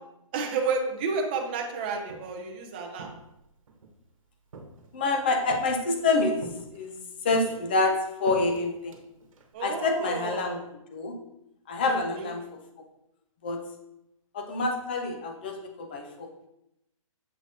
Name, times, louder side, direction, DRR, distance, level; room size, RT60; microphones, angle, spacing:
voice 1, 0.3-3.1 9.5-10.6 11.9-12.3, right 4 dB, 20° right, 1 dB, 0.7 m, -31 dB
Walk footsteps, 1.8-2.5 3.0-4.0 4.5-5.1 5.5-6.0 6.4-7.0 7.3-9.5, right 3 dB, 65° right, 1.2 m, -45 dB
voice 2, 4.9-9.0 9.6-10.6 10.9-11.1 11.7-12.9 13.4-13.6 14.3-16.3, left 3 dB, 15° left, 5 dB, 0.5 m, -27 dB
7.7 x 4.9 x 2.7 m, 0.84 s
hypercardioid pair, 170°, 18 cm